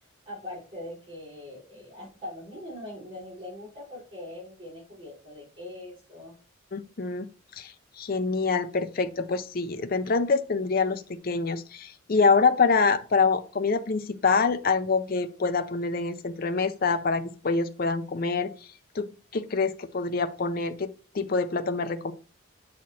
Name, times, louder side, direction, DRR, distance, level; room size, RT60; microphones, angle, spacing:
voice 1, 0.3-6.3, left 1 dB, 25° right, -6 dB, 4.2 m, -41 dB
voice 2, 6.7-7.3 7.6-18.5 19.0-19.1 19.3-20.9 21.1-22.1, left 4 dB, 45° left, 9 dB, 0.5 m, -25 dB
7.3 x 4.3 x 4.2 m, 0.35 s
head